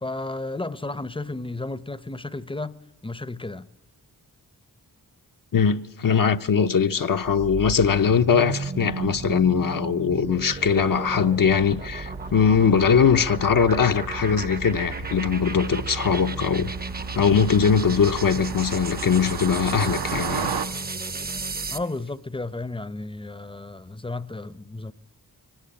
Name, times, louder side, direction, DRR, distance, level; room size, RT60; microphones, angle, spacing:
voice 1, 0.0-2.7 3.0-3.7 21.7-24.9, left 2 dB, 15° left, 0.7 m, -33 dB
voice 2, 5.5-16.7 17.2-20.6, left 6 dB, 60° left, 0.8 m, -21 dB
sound 1, 7.2-21.9, right 3 dB, 25° right, 0.7 m, -34 dB
Car passing by, 10.5-20.7, right 6 dB, 75° right, 0.9 m, -35 dB
23.0 x 18.5 x 8.7 m
wide cardioid pair, 65°, 38 cm